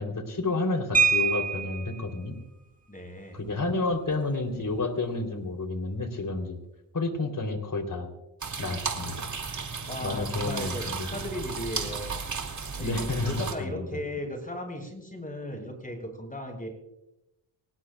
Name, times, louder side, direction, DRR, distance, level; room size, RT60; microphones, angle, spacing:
voice 1, 0.0-2.4 3.3-6.6 6.9-8.1 8.6-9.3 10.0-11.1 12.8-14.0, left 2 dB, 40° left, 6 dB, 3.2 m, -30 dB
sound 1, 0.9-2.0 3.5-3.6 3.9-4.1 4.5-4.8, right 5 dB, 15° right, 1.8 m, -25 dB
voice 2, 2.9-3.4 9.9-12.2 12.8-16.7, equal, 15° left, 2 dB, 7.3 m, -36 dB
sound 2, 8.4-13.5, right 5 dB, 35° right, 2.7 m, -34 dB
25.0 x 18.5 x 2.3 m, 0.94 s
cardioid pair, 65°, 49 cm